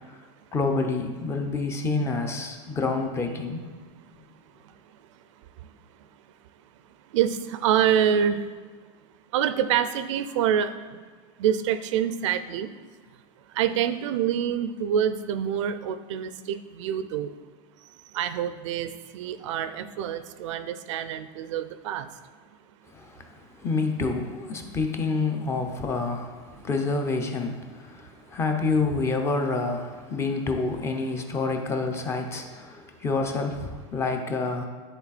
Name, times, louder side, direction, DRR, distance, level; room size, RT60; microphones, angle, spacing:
voice 1, 0.5-3.6 22.9-34.7, left 3 dB, 15° left, 4 dB, 0.6 m, -28 dB
voice 2, 7.1-8.4 9.3-10.7 11.4-12.7 13.6-17.3 18.1-22.1, right 9 dB, 85° right, 11 dB, 0.5 m, -26 dB
10.0 x 4.0 x 4.1 m, 1.5 s
supercardioid pair, 155°, 15 cm